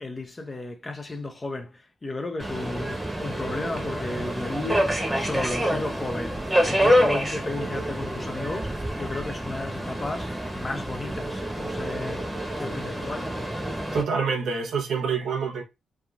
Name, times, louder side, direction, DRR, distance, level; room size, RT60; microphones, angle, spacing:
voice 1, 0.0-13.4, left 2 dB, 30° left, 0.7 m, -34 dB
Subway metro underground, 2.4-14.0, equal, 10° right, 1.1 m, -27 dB
voice 2, 13.9-15.6, right 5 dB, 75° right, 0.8 m, -26 dB
3.4 x 2.4 x 2.4 m
supercardioid pair, 50°, 0 cm